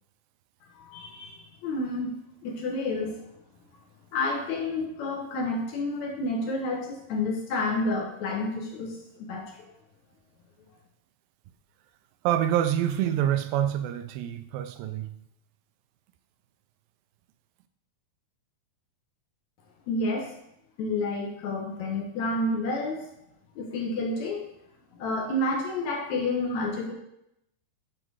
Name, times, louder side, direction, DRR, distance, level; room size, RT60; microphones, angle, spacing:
voice 1, 0.7-2.1 2.4-3.2 4.1-9.7 19.9-20.3 20.8-23.1 23.6-24.4 24.9-26.9, left 2 dB, 65° left, 0 dB, 2.0 m, -30 dB
voice 2, 12.2-15.2, right 11 dB, 80° right, 10 dB, 2.3 m, -26 dB
9.9 x 3.9 x 4.7 m, 0.79 s
omnidirectional pair, 4.2 m